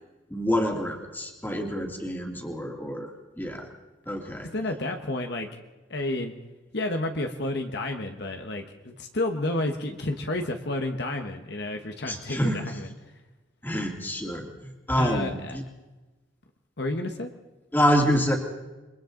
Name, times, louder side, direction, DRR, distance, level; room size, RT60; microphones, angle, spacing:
voice 1, 0.3-3.7 4.1-4.5 12.0-12.6 13.6-15.6 17.7-18.4, equal, 10° left, 1 dB, 2.6 m, -27 dB
voice 2, 4.5-5.5 5.9-6.3 6.7-12.9 15.0-15.6 16.8-17.3, left 2 dB, 55° left, 4 dB, 1.4 m, -30 dB
28.5 x 23.0 x 3.9 m, 1.1 s
head